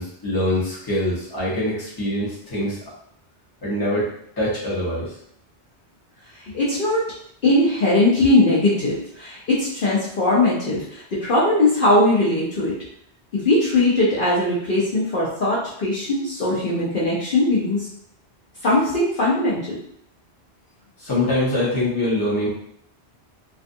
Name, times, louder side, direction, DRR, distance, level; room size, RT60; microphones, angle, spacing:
voice 1, 0.0-2.8 3.6-4.1 4.4-5.1 21.0-22.5, left 1 dB, 20° left, -7 dB, 0.8 m, -24 dB
voice 2, 6.5-7.0 7.4-12.7 13.3-17.8 18.6-19.8, left 2 dB, 55° left, -7 dB, 0.8 m, -20 dB
2.4 x 2.3 x 2.6 m, 0.67 s
omnidirectional pair, 1.1 m